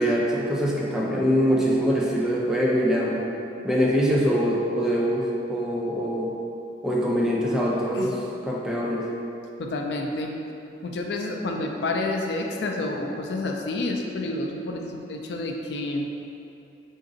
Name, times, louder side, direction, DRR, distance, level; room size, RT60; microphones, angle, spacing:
voice 1, 0.0-3.2 3.6-6.3 6.8-8.2 8.4-9.0, equal, 5° right, -5 dB, 0.4 m, -23 dB
voice 2, 9.6-10.3 10.8-16.1, left 2 dB, 65° left, 1 dB, 0.3 m, -29 dB
3.8 x 2.5 x 3.8 m, 2.8 s
head